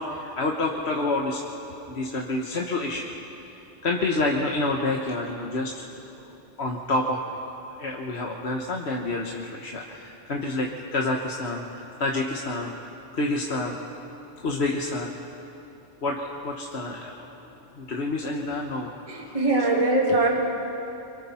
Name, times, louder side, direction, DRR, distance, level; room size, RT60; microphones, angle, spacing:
voice 1, 0.0-1.4 1.7-3.1 3.8-6.0 6.6-7.2 7.8-12.7 13.1-13.8 14.4-15.1 16.0-17.3 17.8-19.4, left 2 dB, 60° left, 0 dB, 1.5 m, -28 dB
voice 2, 19.1-20.3, right 2 dB, 25° right, -3 dB, 2.6 m, -22 dB
29.0 x 24.5 x 4.3 m, 2.9 s
omnidirectional pair, 1.3 m